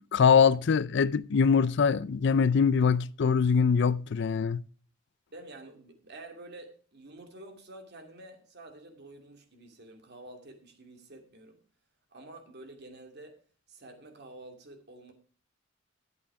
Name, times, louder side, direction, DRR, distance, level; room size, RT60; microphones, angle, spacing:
voice 1, 0.0-4.6, left 6 dB, 60° left, 0.4 m, -23 dB
voice 2, 5.3-11.6 12.1-13.4 13.7-15.1, right 2 dB, 55° right, 2.4 m, -49 dB
11.5 x 8.4 x 4.7 m
head